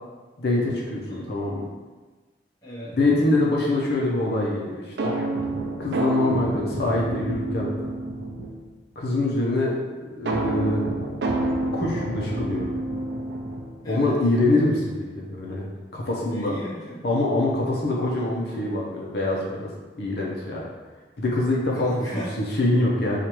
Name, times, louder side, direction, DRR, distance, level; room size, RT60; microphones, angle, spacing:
voice 1, 0.4-1.6 3.0-5.2 5.8-7.7 9.0-10.8 11.7-12.7 13.8-15.6 15.9-16.5 17.0-19.7 20.0-20.6 21.2-22.1 22.4-23.2, left 2 dB, 65° left, -4 dB, 0.6 m, -24 dB
voice 2, 2.6-3.0 13.8-14.2 16.2-17.0 21.7-22.4, equal, 20° left, -7 dB, 0.8 m, -35 dB
sound 1, 5.0-8.7 10.3-13.9, right 2 dB, 70° right, 0.4 m, -28 dB
4.6 x 2.4 x 2.9 m, 1.3 s
head